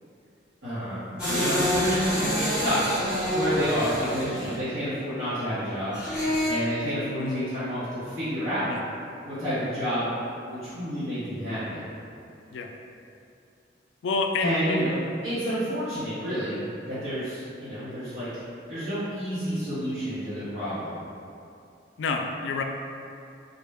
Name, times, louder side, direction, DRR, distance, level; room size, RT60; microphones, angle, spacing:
voice 1, 0.6-2.8 3.3-6.0 6.5-8.7 9.2-10.1 10.4-11.9 14.4-15.0 15.2-18.4 18.7-21.0, equal, 70° right, -15 dB, 1.0 m, -29 dB
sound 1, 1.2-4.5 5.9-6.5, left 1 dB, 5° right, 1.0 m, -27 dB
voice 2, 7.2-7.5 8.7-8.8 12.5-12.7 14.0-14.9 22.0-22.6, left 3 dB, 90° left, 3 dB, 0.3 m, -28 dB
3.9 x 2.1 x 3.4 m, 2.5 s
head